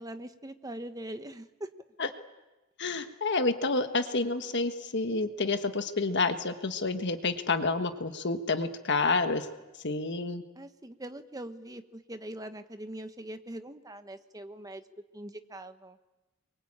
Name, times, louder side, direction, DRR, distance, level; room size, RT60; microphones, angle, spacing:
voice 1, 0.0-1.7 10.5-14.8 15.1-16.0, right 1 dB, 15° right, 8 dB, 1.2 m, -42 dB
voice 2, 2.8-9.5 9.8-10.4, left 3 dB, 55° left, 8 dB, 1.5 m, -29 dB
25.0 x 23.5 x 8.8 m, 1.1 s
head